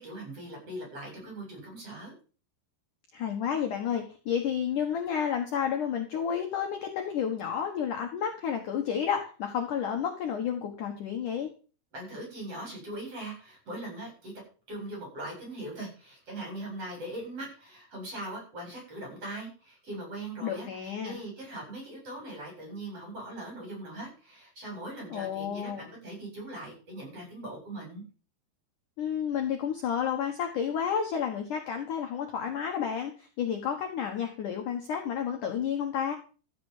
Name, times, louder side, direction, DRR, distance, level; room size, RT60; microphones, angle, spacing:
voice 1, 0.0-2.1 11.9-14.3 14.7-28.0, right 1 dB, 30° right, -1 dB, 8.7 m, -40 dB
voice 2, 3.1-11.5 20.4-21.2 25.1-25.8 29.0-36.1, left 8 dB, 60° left, 3 dB, 2.4 m, -31 dB
14.5 x 6.6 x 7.3 m, 0.38 s
omnidirectional pair, 5.2 m